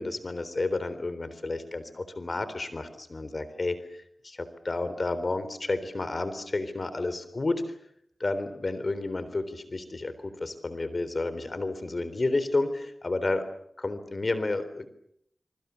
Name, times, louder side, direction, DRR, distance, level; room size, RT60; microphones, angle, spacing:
voice 1, 0.0-3.8 4.2-7.6 8.2-13.5 13.8-14.9, left 2 dB, 55° left, 12 dB, 3.7 m, -31 dB
26.5 x 24.0 x 7.0 m, 0.69 s
cardioid pair, 45°, 0 cm